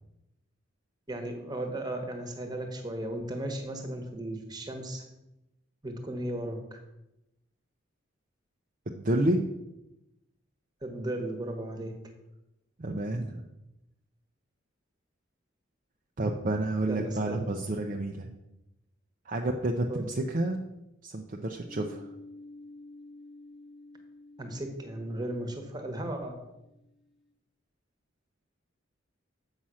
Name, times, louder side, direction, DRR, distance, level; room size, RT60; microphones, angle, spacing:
voice 1, 1.1-5.0 5.8-6.8 10.8-11.9 16.9-17.5 19.9-20.1 24.4-26.3, right 1 dB, 20° right, 5 dB, 1.2 m, -35 dB
voice 2, 8.9-9.5 12.8-13.4 16.2-18.3 19.3-20.6 21.0-22.1, right 1 dB, 40° right, 2 dB, 0.6 m, -30 dB
sound 1, 21.6-27.2, left 2 dB, ahead, 0.9 m, -50 dB
7.5 x 5.7 x 6.2 m, 0.91 s
head